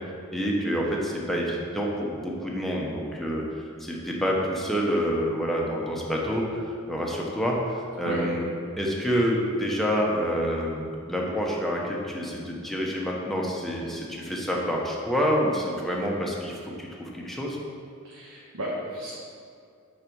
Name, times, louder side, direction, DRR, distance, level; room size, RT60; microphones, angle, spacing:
voice 1, 0.3-3.4 3.8-7.6 8.0-8.5 8.8-17.6, equal, ahead, -3 dB, 0.9 m, -27 dB
voice 2, 18.1-19.1, equal, 90° right, -6 dB, 1.3 m, -33 dB
8.8 x 4.0 x 4.6 m, 2.3 s
head